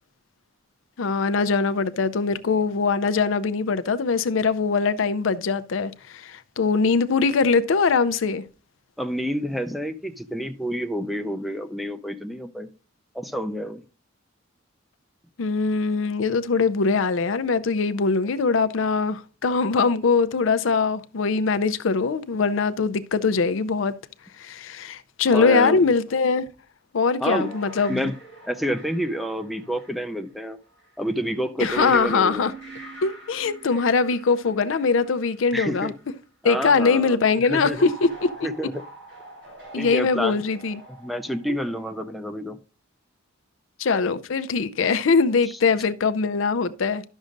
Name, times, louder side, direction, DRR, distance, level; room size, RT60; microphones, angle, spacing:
voice 1, 1.0-8.4 15.4-23.9 24.4-26.5 26.9-28.0 31.6-32.5 33.0-35.9 36.4-38.5 39.7-40.8 43.8-47.0, left 4 dB, 80° left, 0.5 m, -22 dB
voice 2, 9.0-12.7 13.1-13.8 25.3-25.8 27.2-27.5 27.9-28.2 28.5-30.6 31.0-32.5 35.5-35.9 36.4-37.2 37.4-37.8 38.4-38.8 39.7-40.4 41.0-42.6 45.5-45.6, equal, ahead, 0.5 m, -28 dB
sound 1, 27.3-30.9 31.6-36.1 37.7-42.1, right 1 dB, 75° right, 4.4 m, -44 dB
12.0 x 6.3 x 2.5 m
head